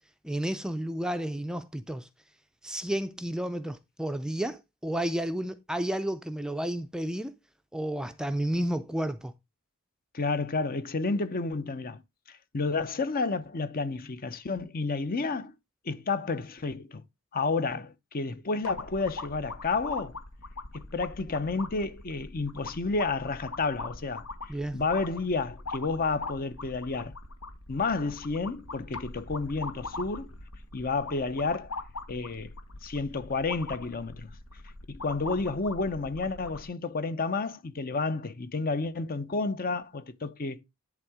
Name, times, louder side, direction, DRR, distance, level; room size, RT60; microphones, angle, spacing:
voice 1, 0.2-2.1 2.6-7.3 7.7-9.3 24.5-24.8, right 1 dB, 5° right, 0.5 m, -31 dB
voice 2, 10.1-12.0 12.3-15.5 15.8-17.0 17.3-20.2 20.7-24.2 24.7-27.1 27.7-30.3 30.7-31.7 32.1-32.5 32.8-34.3 34.9-40.6, left 3 dB, 40° left, 0.7 m, -31 dB
sound 1, 18.6-36.7, left 3 dB, 75° left, 1.4 m, -42 dB
10.5 x 3.6 x 4.8 m
head